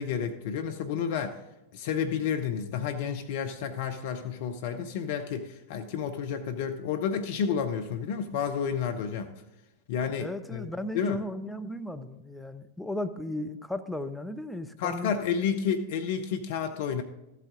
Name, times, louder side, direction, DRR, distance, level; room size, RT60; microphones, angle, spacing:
voice 1, 0.0-1.4 1.7-9.3 9.9-10.7 10.9-11.2 14.8-17.0, left 7 dB, 50° left, 7 dB, 0.6 m, -30 dB
voice 2, 10.2-15.2, left 1 dB, 5° left, 6 dB, 0.6 m, -36 dB
14.0 x 8.2 x 3.8 m, 0.93 s
figure-of-eight pair, 90°, 0 cm